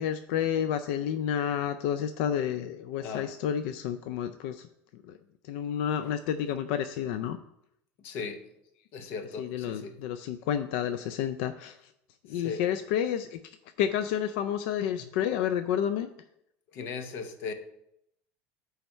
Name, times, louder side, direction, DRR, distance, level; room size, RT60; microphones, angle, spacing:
voice 1, 0.0-5.2 5.4-7.4 9.4-11.9 12.2-16.1, left 9 dB, 75° left, 0.4 m, -30 dB
voice 2, 3.0-3.3 6.0-6.2 8.0-8.5 8.9-10.0 12.3-12.6 15.0-15.1 16.7-17.5, left 5 dB, 45° left, 0.7 m, -38 dB
8.7 x 3.4 x 5.3 m
cardioid pair, 175°, 6 cm